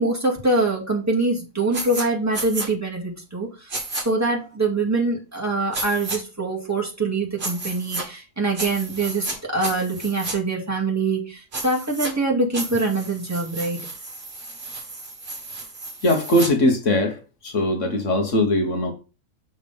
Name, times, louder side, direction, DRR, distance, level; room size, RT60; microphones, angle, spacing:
voice 1, 0.0-3.7 4.0-13.8, right 2 dB, 10° right, 2.1 m, -24 dB
sound 1, 1.7-2.0 2.3-2.7 3.7-4.0 5.7-6.2 7.4-8.0 8.5-9.4 9.6-10.3 11.5-12.1 12.5-16.5, right 2 dB, 50° right, 2.1 m, -32 dB
voice 2, 16.0-18.9, left 1 dB, 60° left, 1.7 m, -21 dB
6.7 x 4.1 x 5.4 m
omnidirectional pair, 1.4 m